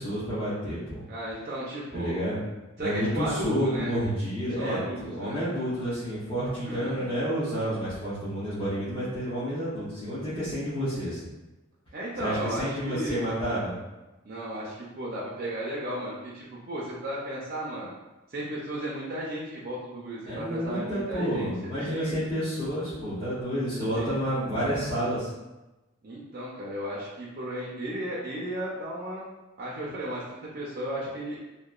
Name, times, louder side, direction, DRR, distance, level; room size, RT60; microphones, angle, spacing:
voice 1, 0.0-1.0 1.9-2.4 2.8-11.2 12.2-13.8 20.3-25.3, equal, 25° left, -14 dB, 0.7 m, -30 dB
voice 2, 1.1-2.3 2.8-3.9 4.6-5.4 6.6-7.1 11.9-13.2 14.2-17.9 18.3-21.5 21.9-22.2 24.0-24.1 26.0-29.3 29.6-31.4, right 1 dB, 45° right, -5 dB, 0.4 m, -34 dB
2.8 x 2.1 x 2.3 m, 1.1 s
head